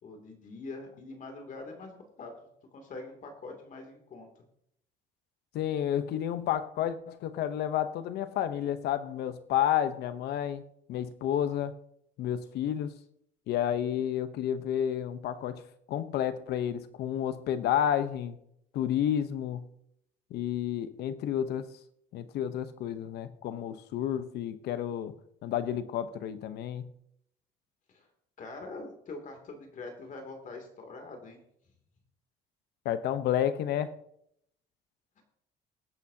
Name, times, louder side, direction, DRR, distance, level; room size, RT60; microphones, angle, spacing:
voice 1, 0.0-2.3 2.7-4.3 27.9-28.1 28.4-31.4 35.2-35.3, left 3 dB, 50° left, 2.7 m, -44 dB
voice 2, 5.5-10.6 10.9-11.8 12.2-12.9 13.5-15.6 15.9-18.4 18.7-19.7 20.3-21.7 22.1-25.1 25.4-26.9 32.8-34.0, left 10 dB, 75° left, 0.9 m, -30 dB
23.0 x 8.4 x 2.8 m
cardioid pair, 110°, 17 cm